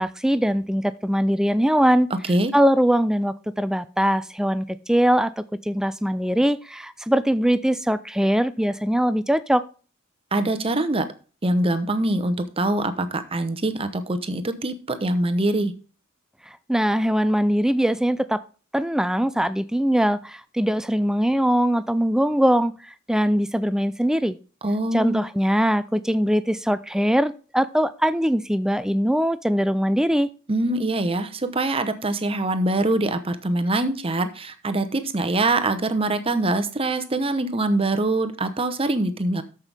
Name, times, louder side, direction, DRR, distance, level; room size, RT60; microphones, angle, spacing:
voice 1, 0.0-2.1 2.5-9.6 16.7-18.4 18.7-22.7 23.1-24.4 24.9-30.3, equal, 5° right, 15 dB, 0.3 m, -21 dB
voice 2, 10.3-11.1 11.4-15.7 24.6-25.2 30.5-39.4, right 2 dB, 25° right, 9 dB, 0.8 m, -24 dB
13.5 x 5.7 x 3.4 m, 0.36 s
head